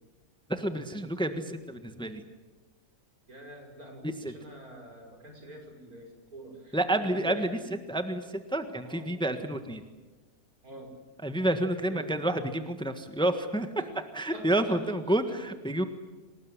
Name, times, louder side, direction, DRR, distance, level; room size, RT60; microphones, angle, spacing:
voice 1, 0.5-2.2 4.0-4.3 6.7-7.6 7.9-9.8 11.2-13.7 14.1-15.9, right 1 dB, 5° left, 8 dB, 1.5 m, -29 dB
voice 2, 3.3-7.7 8.8-9.1 10.6-10.9 11.8-12.1 13.8-13.9 14.3-14.8, right 1 dB, 80° right, 2 dB, 6.2 m, -46 dB
26.5 x 19.5 x 9.9 m, 1.2 s
omnidirectional pair, 1.5 m